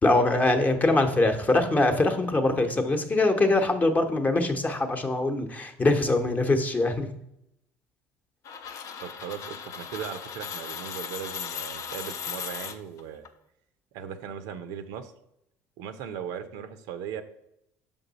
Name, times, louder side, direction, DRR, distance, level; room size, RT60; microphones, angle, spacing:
voice 1, 0.0-7.1, left 2 dB, 25° left, 6 dB, 0.9 m, -23 dB
sound 1, 8.4-13.3, left 7 dB, 55° left, 0.6 m, -37 dB
voice 2, 9.0-13.3 13.9-15.1 15.8-17.2, right 8 dB, 75° right, 10 dB, 0.6 m, -38 dB
5.4 x 5.3 x 4.0 m, 0.79 s
supercardioid pair, 85°, 7 cm